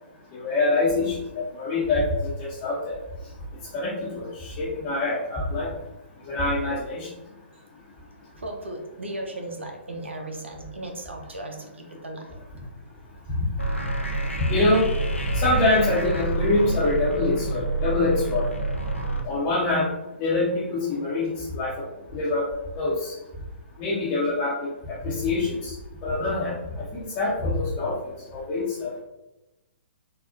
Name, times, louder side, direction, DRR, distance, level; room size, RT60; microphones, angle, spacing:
voice 1, 0.3-3.0 3.7-5.7 6.3-7.1 14.5-14.9 15.3-18.5 19.2-19.9 20.2-21.8 22.1-22.4 22.8-23.1 23.8-24.7 25.0-25.7 26.0-26.6 26.9-28.0 28.3-28.9, left 2 dB, 25° left, -7 dB, 0.5 m, -25 dB
voice 2, 8.4-12.4, right 1 dB, 75° right, 2 dB, 0.6 m, -36 dB
sound 1, 13.6-19.2, right 2 dB, 90° left, 0.5 m, -28 dB
3.7 x 2.0 x 2.4 m, 0.96 s
figure-of-eight pair, 125°, 7 cm